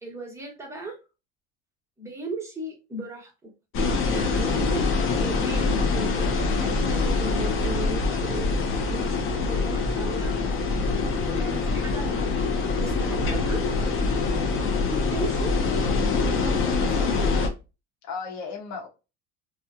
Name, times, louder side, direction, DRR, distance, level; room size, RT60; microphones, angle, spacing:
voice 1, 0.0-1.0 2.0-3.5 4.1-10.4 11.3-12.3 12.7-13.6 14.6-15.6 16.3-17.3, right 2 dB, 10° right, 0.9 m, -36 dB
sound 1, 3.7-17.5, left 4 dB, 40° left, 0.6 m, -24 dB
voice 2, 11.0-11.5 18.0-18.9, left 5 dB, 55° left, 1.1 m, -37 dB
2.9 x 2.3 x 2.3 m
supercardioid pair, 120°, 32 cm